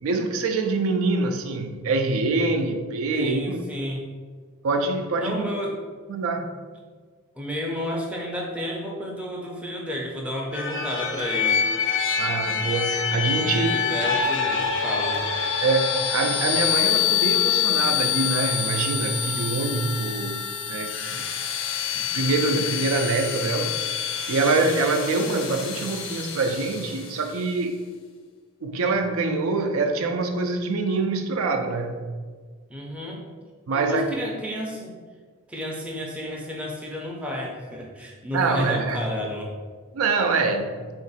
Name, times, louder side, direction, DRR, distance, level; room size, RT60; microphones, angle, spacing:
voice 1, 0.0-3.6 4.6-5.5 6.1-6.5 12.2-13.7 15.6-21.3 21.9-23.9 24.3-27.8 28.6-32.0 33.7-34.1 38.3-39.0 39.9-40.8, right 3 dB, 75° right, 5 dB, 0.4 m, -25 dB
voice 2, 3.2-4.1 5.1-5.8 7.4-11.6 13.4-15.2 32.7-33.2 33.7-34.9 35.5-39.5, equal, 5° right, -1 dB, 0.5 m, -31 dB
sound 1, 10.5-27.3, left 7 dB, 55° left, 0.5 m, -26 dB
3.7 x 2.5 x 4.0 m, 1.5 s
head